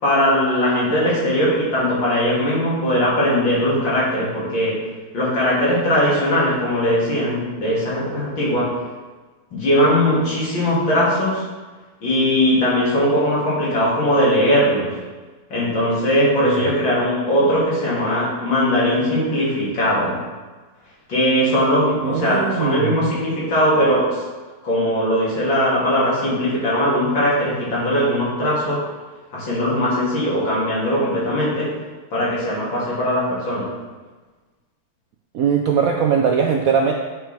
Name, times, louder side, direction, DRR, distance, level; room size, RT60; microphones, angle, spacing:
voice 1, 0.0-4.8 5.1-8.7 9.5-11.4 12.0-14.9 15.5-20.2 21.1-24.2 24.6-28.8 29.3-31.7 32.1-33.7, equal, 75° left, -7 dB, 3.2 m, -19 dB
voice 2, 22.0-23.2 35.3-36.9, right 7 dB, 75° right, 2 dB, 0.8 m, -20 dB
8.5 x 6.0 x 3.4 m, 1.3 s
omnidirectional pair, 2.1 m